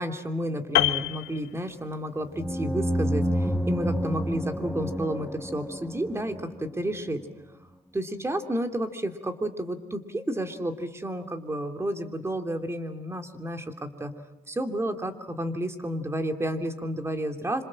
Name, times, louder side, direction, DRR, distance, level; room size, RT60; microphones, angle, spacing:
voice 1, 0.0-7.2 7.9-14.1 14.5-17.6, right 1 dB, 15° right, 7 dB, 2.9 m, -31 dB
Piano, 0.8-2.2 2.5-2.7, left 16 dB, 80° left, 1.2 m, -27 dB
sound 1, 2.3-6.9, equal, ahead, 1.0 m, -29 dB
26.5 x 26.5 x 7.6 m, 0.92 s
cardioid pair, 110°, 17 cm